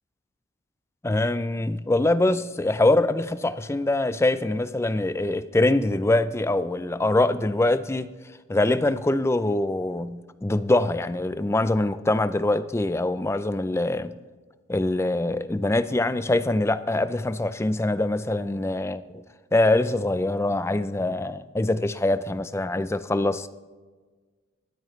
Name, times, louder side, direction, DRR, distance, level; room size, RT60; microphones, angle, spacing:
voice 1, 1.0-8.1 8.5-14.1 14.7-19.2 19.5-23.5, left 2 dB, 15° left, 0.4 m, -24 dB
23.0 x 8.8 x 3.2 m
head